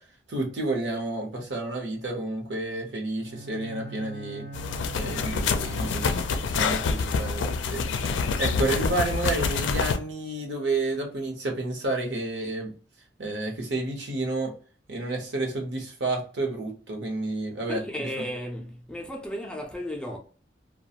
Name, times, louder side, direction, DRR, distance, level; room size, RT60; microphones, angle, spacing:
voice 1, 0.3-4.5 4.9-12.7 13.2-14.5 14.9-18.2, right 2 dB, 75° right, 0.9 m, -30 dB
Bowed string instrument, 3.2-6.9, right 2 dB, 50° right, 0.5 m, -42 dB
sound 1, 4.5-10.0, left 5 dB, 90° left, 0.4 m, -27 dB
voice 2, 17.7-20.2, equal, 5° left, 0.4 m, -34 dB
2.4 x 2.2 x 2.8 m
head